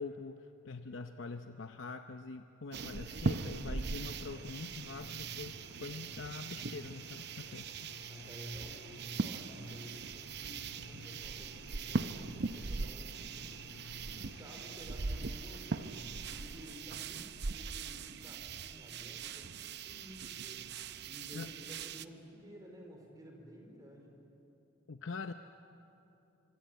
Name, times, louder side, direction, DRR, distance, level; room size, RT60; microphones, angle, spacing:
voice 1, 0.0-5.6 5.8-7.7 21.3-21.5 24.9-25.3, left 4 dB, 65° left, 7 dB, 0.7 m, -44 dB
sound 1, 2.7-22.0, right 4 dB, 55° right, 0.7 m, -40 dB
sound 2, 3.2-16.7, left 1 dB, 85° left, 2.3 m, -53 dB
voice 2, 8.1-13.7 14.0-24.2, equal, 20° right, 2 dB, 4.4 m, -53 dB
26.0 x 24.5 x 9.2 m, 2.9 s
head